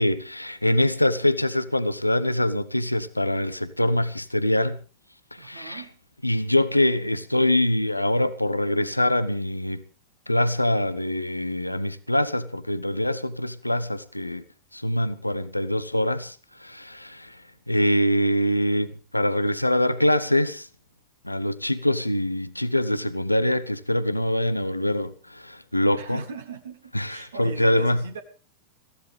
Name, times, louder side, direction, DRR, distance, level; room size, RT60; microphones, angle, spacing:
voice 1, 0.0-4.8 5.3-5.8 6.2-9.8 10.3-14.4 14.7-20.7 21.2-26.2 26.9-28.0, left 1 dB, 85° left, 0.8 m, -24 dB
voice 2, 5.4-5.9 25.9-28.2, right 6 dB, 65° right, 1.6 m, -39 dB
22.5 x 15.0 x 3.5 m
figure-of-eight pair, 90°, 0 cm